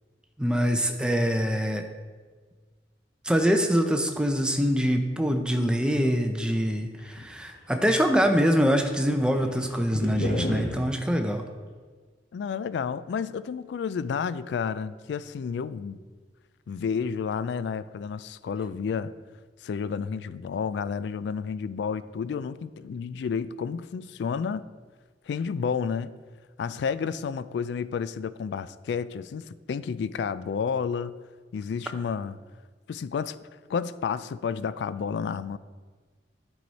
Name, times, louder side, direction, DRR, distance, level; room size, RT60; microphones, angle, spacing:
voice 1, 0.4-1.9 3.2-11.4, equal, 5° right, 5 dB, 0.5 m, -24 dB
sound 1, 7.0-8.0 8.2-8.3 8.7-10.8, equal, 55° left, 1.5 m, -32 dB
voice 2, 12.3-16.0 16.7-19.1 19.6-24.6 25.3-26.1 26.6-31.2 31.5-32.4 32.9-33.4 33.7-35.6, left 6 dB, 75° left, 15 dB, 0.3 m, -31 dB
9.2 x 4.7 x 4.1 m, 1.5 s
head